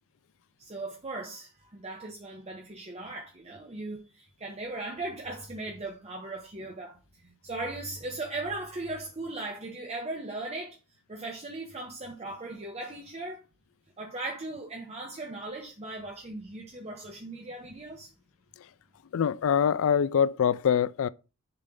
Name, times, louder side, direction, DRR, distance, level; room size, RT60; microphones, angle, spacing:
voice 1, 0.6-10.8 11.1-13.4 14.0-18.1, right 2 dB, 30° right, 1.0 m, -38 dB
voice 2, 19.1-21.1, left 8 dB, 60° left, 0.4 m, -24 dB
6.9 x 3.3 x 5.3 m
head